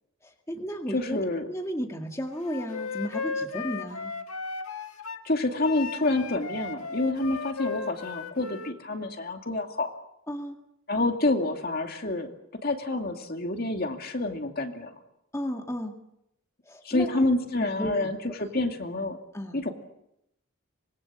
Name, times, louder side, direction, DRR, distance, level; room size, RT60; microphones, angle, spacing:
voice 1, 0.2-1.2 1.5-4.1 10.3-10.6 15.3-15.9 16.7-17.2 17.6-18.1 19.3-19.6, equal, 15° left, 3 dB, 1.9 m, -34 dB
voice 2, 0.9-1.5 5.2-9.9 10.9-12.3 12.6-14.9 16.8-19.2 19.5-19.7, left 2 dB, 45° left, 4 dB, 2.5 m, -28 dB
Wind instrument woodwind instrument, 2.5-5.2 5.6-8.7, left 4 dB, 85° left, 1.7 m, -35 dB
25.5 x 22.5 x 7.6 m, 0.80 s
head